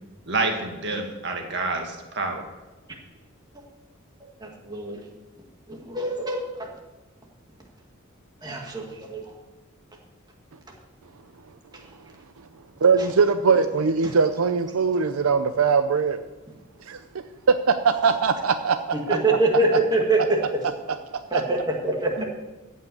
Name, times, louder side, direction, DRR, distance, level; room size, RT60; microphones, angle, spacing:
voice 1, 0.3-2.4 22.2-22.3, right 3 dB, 55° right, 3 dB, 1.9 m, -28 dB
voice 2, 4.4-5.0 5.7-6.7 8.4-9.2 14.0-14.1 18.9-20.4 21.3-22.2, right 2 dB, 20° right, 0 dB, 1.8 m, -24 dB
voice 3, 12.8-16.2 16.8-17.0 17.5-18.8 19.1-19.4 19.7-19.8 21.1-21.4, right 5 dB, 80° right, 9 dB, 0.6 m, -21 dB
14.5 x 5.6 x 8.3 m, 1.2 s
head